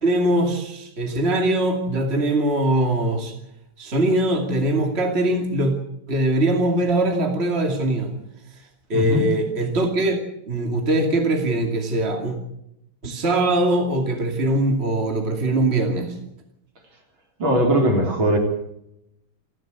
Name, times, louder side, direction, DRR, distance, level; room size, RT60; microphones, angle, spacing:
voice 1, 0.0-3.3 3.8-5.8 6.1-8.1 8.9-10.2 10.5-12.4 13.0-16.1, right 1 dB, 30° right, 4 dB, 2.8 m, -21 dB
voice 2, 8.9-9.2 17.4-18.4, right 1 dB, 65° right, 3 dB, 4.5 m, -19 dB
28.5 x 12.0 x 8.2 m, 0.80 s
omnidirectional pair, 2.4 m